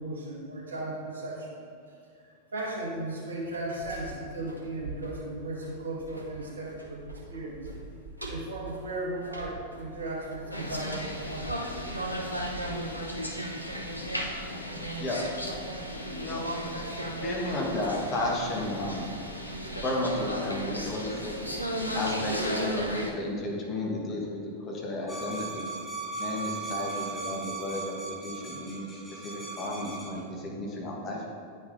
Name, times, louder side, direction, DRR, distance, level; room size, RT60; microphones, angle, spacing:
voice 1, 0.0-1.6 1.9-7.0 7.3-7.6 8.3-11.8, right 2 dB, 70° right, -4 dB, 1.5 m, -36 dB
sound 1, 3.3-14.1 14.4-14.5, right 2 dB, 90° right, 0.8 m, -45 dB
sound 2, 10.5-23.1, equal, 85° left, 0.6 m, -34 dB
voice 2, 15.0-15.3 16.2-16.5 17.2-19.1 19.8-21.3 21.9-25.7 26.2-31.3, left 1 dB, 30° left, -2 dB, 1.2 m, -33 dB
sound 3, 25.1-30.2, right 4 dB, 10° left, 1.2 m, -37 dB
9.7 x 5.2 x 2.6 m, 2.3 s
figure-of-eight pair, 90°, 0 cm